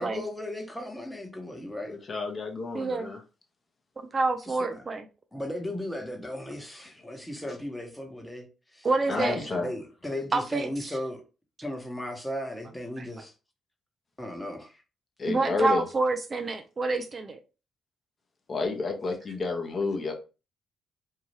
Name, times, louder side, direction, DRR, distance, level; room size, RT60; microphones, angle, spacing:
voice 1, 0.0-2.0 4.5-4.8 5.3-8.5 8.7-8.9 9.1-11.2 11.6-13.3 14.2-14.8, left 1 dB, 5° left, 0.9 m, -36 dB
voice 2, 1.9-3.2 9.1-9.7 15.2-15.8 18.5-20.1, left 3 dB, 35° left, 0.8 m, -30 dB
voice 3, 2.7-3.1 4.1-5.0 8.8-9.5 10.3-10.9 13.0-13.1 15.3-17.4, right 3 dB, 35° right, 0.3 m, -27 dB
2.7 x 2.3 x 3.1 m
cardioid pair, 90°, 0 cm